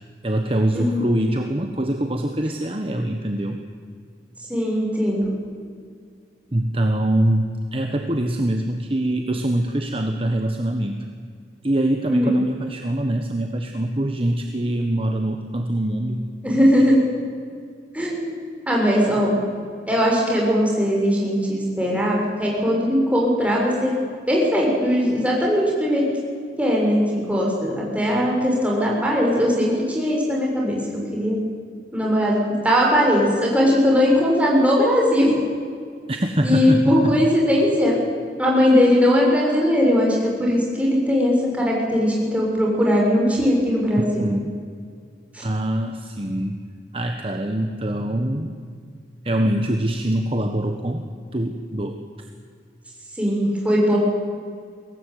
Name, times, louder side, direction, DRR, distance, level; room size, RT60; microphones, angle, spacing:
voice 1, 0.2-3.6 6.5-11.0 11.6-16.3 36.1-37.3 43.9-44.5 45.4-46.6 46.9-48.6 49.2-52.0, right 1 dB, 30° right, 4 dB, 1.4 m, -24 dB
voice 2, 4.5-5.3 12.1-12.3 16.4-16.9 17.9-18.3 18.7-19.4 19.9-23.9 24.3-26.0 26.6-30.8 31.1-31.4 31.9-32.4 32.6-35.3 36.4-37.9 38.4-44.3 45.3-45.4 53.2-54.0, equal, 10° right, -3 dB, 6.6 m, -19 dB
23.0 x 18.5 x 9.5 m, 2.2 s
head